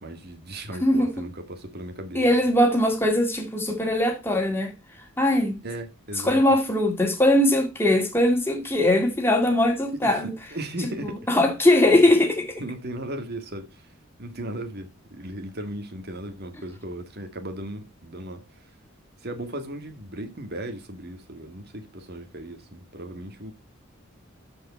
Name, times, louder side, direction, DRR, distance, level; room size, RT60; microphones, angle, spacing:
voice 1, 0.0-2.3 5.6-6.4 9.9-11.2 11.9-12.1 12.6-13.9 14.2-18.6 19.2-23.5, right 1 dB, 50° right, 1.9 m, -36 dB
voice 2, 0.8-1.1 2.1-4.7 5.2-5.6 6.2-10.3 11.3-12.6, left 1 dB, 10° left, 2.2 m, -21 dB
12.5 x 5.0 x 4.3 m
head